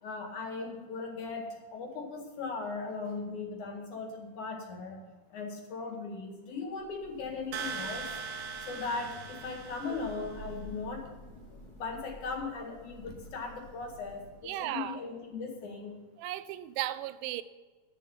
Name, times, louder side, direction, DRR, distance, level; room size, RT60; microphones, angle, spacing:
voice 1, 0.0-5.0 5.3-8.1 8.7-11.1 11.8-16.0, left 4 dB, 60° left, 3.3 m, -38 dB
Thunder / Rain, 6.7-14.7, equal, 35° left, 1.5 m, -51 dB
sound 1, 7.5-10.4, right 5 dB, 70° right, 2.1 m, -40 dB
voice 2, 14.4-15.0 16.2-17.4, right 14 dB, 90° right, 2.4 m, -35 dB
11.0 x 9.2 x 5.7 m
omnidirectional pair, 4.0 m